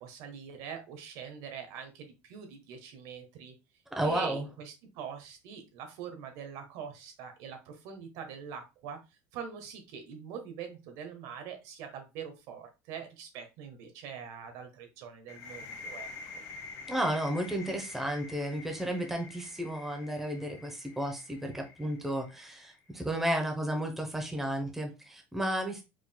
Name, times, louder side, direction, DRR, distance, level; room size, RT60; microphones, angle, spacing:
voice 1, 0.0-3.5 4.0-9.0 9.3-16.1, right 7 dB, 70° right, 1.2 m, -43 dB
voice 2, 3.9-4.5 16.9-25.8, right 1 dB, 5° right, 0.9 m, -33 dB
sound 1, 15.3-22.8, left 4 dB, 55° left, 1.3 m, -47 dB
4.8 x 3.8 x 2.2 m
cardioid pair, 135°, 6 cm